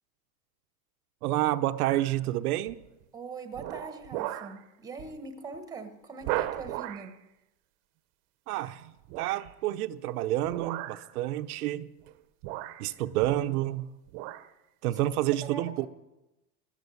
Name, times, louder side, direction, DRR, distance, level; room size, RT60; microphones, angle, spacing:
voice 1, 1.2-2.8 8.5-11.9 12.8-13.9 14.8-15.9, right 15 dB, 70° right, 0.8 m, -29 dB
sound 1, 1.8-2.1 2.7-3.0 3.5-4.6 5.0-5.2 5.5-5.6 6.2-7.1 9.1-9.5 10.4-11.1 12.0-12.1 12.4-13.8 14.1-14.5 15.0-15.1, right 15 dB, 40° right, 0.9 m, -36 dB
voice 2, 3.1-7.2 15.4-15.9, right 4 dB, 10° right, 1.1 m, -42 dB
14.5 x 13.0 x 7.1 m
supercardioid pair, 155°, 46 cm